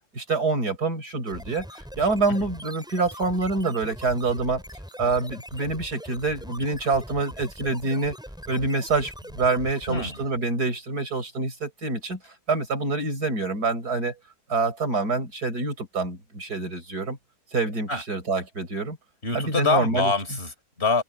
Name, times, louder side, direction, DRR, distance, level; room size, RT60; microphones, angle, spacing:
voice 1, 0.1-1.7 2.0-4.6 5.0-8.2 8.5-12.2 12.5-14.1 14.5-17.2 17.5-19.0 19.3-20.1, right 3 dB, 85° right, 5.9 m, -26 dB
sound 1, 1.3-10.4, equal, 5° right, 6.7 m, -42 dB
voice 2, 9.9-10.2 17.9-18.0 19.2-21.0, left 3 dB, 40° left, 4.2 m, -25 dB
omnidirectional pair, 1.6 m